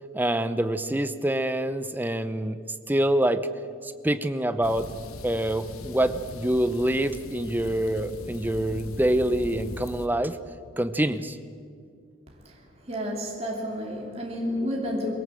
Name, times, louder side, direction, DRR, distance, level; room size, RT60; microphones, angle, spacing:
voice 1, 0.1-2.6 2.9-3.4 3.8-4.9 5.2-10.4 10.8-11.4, right 1 dB, 10° right, 11 dB, 0.7 m, -26 dB
sound 1, 4.6-10.1, left 2 dB, 90° left, 1.2 m, -40 dB
voice 2, 12.9-15.1, equal, 30° right, -2 dB, 2.7 m, -30 dB
22.5 x 17.5 x 7.7 m, 2.2 s
head